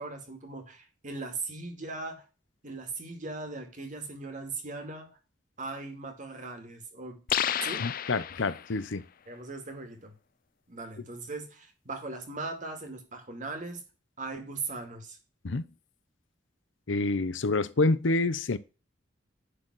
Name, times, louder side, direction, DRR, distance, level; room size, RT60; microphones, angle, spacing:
voice 1, 0.0-2.2 2.6-5.1 5.6-7.2 7.6-7.9 9.3-10.1 10.7-13.8 14.2-15.2, right 3 dB, 45° right, 2.4 m, -39 dB
sound 1, 7.3-8.8, left 9 dB, 50° left, 0.5 m, -31 dB
voice 2, 7.8-9.0 15.4-15.7 16.9-18.6, left 3 dB, 85° left, 0.8 m, -27 dB
10.5 x 4.1 x 6.2 m
head